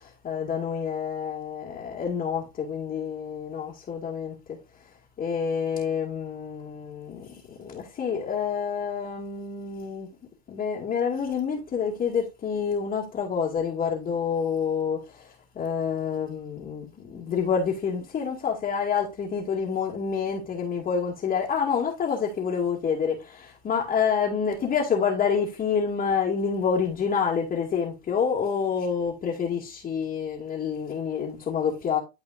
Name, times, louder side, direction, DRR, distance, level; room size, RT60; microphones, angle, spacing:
voice 1, 0.0-4.3 5.2-10.1 10.5-15.3 15.6-32.0, left 6 dB, 25° left, 2.2 m, -28 dB
12.5 x 4.8 x 2.6 m
hypercardioid pair, 105°, 32 cm